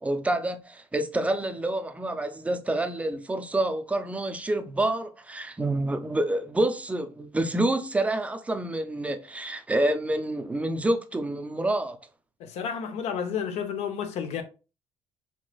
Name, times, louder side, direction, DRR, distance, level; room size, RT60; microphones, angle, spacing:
voice 1, 0.0-12.0, right 1 dB, 10° right, 0.4 m, -28 dB
voice 2, 12.4-14.4, left 7 dB, 70° left, 0.7 m, -31 dB
3.9 x 2.9 x 2.3 m
cardioid pair, 120°, 11 cm